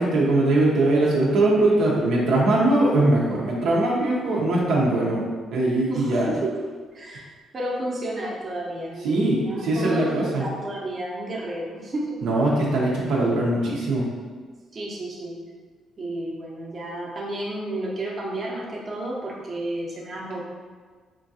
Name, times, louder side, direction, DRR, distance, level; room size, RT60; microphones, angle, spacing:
voice 1, 0.0-5.2 5.5-6.3 9.0-10.4 12.2-14.1, right 2 dB, 80° right, -4 dB, 0.6 m, -21 dB
voice 2, 5.9-6.5 6.9-7.3 7.5-12.2 14.7-15.4 16.0-20.4, right 1 dB, 40° right, -3 dB, 0.7 m, -31 dB
3.7 x 2.4 x 2.6 m, 1.5 s
cardioid pair, 90°, 0 cm